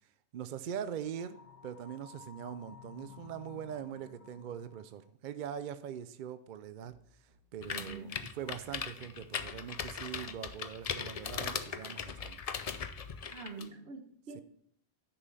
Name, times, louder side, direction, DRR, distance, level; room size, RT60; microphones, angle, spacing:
voice 1, 0.3-1.4 1.6-6.9 7.5-8.1 8.4-12.4 14.3-14.4, right 8 dB, 60° right, 12 dB, 0.6 m, -42 dB
sound 1, 1.1-5.0, left 6 dB, 65° left, 1.5 m, -54 dB
sound 2, 6.8-12.3, right 2 dB, 30° right, 1.5 m, -61 dB
sound 3, 7.6-13.6, left 6 dB, 45° left, 0.5 m, -39 dB
voice 2, 7.7-8.2 13.3-14.4, right 4 dB, 75° right, 6 dB, 1.3 m, -45 dB
9.8 x 5.6 x 4.1 m, 0.65 s
omnidirectional pair, 1.1 m